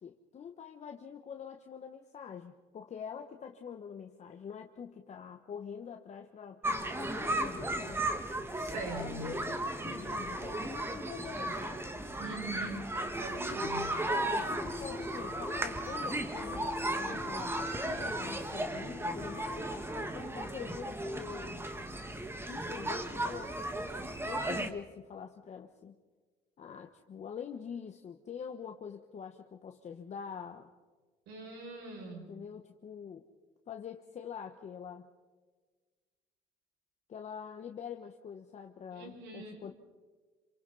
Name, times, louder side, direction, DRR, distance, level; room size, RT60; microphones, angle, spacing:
voice 1, 0.0-8.2 8.9-11.8 13.5-13.7 14.1-21.6 22.5-23.7 24.2-25.9 26.6-30.7 32.3-33.2 33.7-35.1 37.1-39.7, left 7 dB, 45° left, 4 dB, 1.3 m, -45 dB
sound 1, 6.6-24.7, right 1 dB, 15° right, 1.8 m, -35 dB
voice 2, 8.6-9.3 12.2-12.8 13.1-14.0 31.3-32.3 38.9-39.6, right 2 dB, 80° right, 1 dB, 6.4 m, -42 dB
sound 2, 14.4-20.2, left 2 dB, 15° left, 2.1 m, -45 dB
28.0 x 27.5 x 4.2 m, 1.4 s
cardioid pair, 110°, 17 cm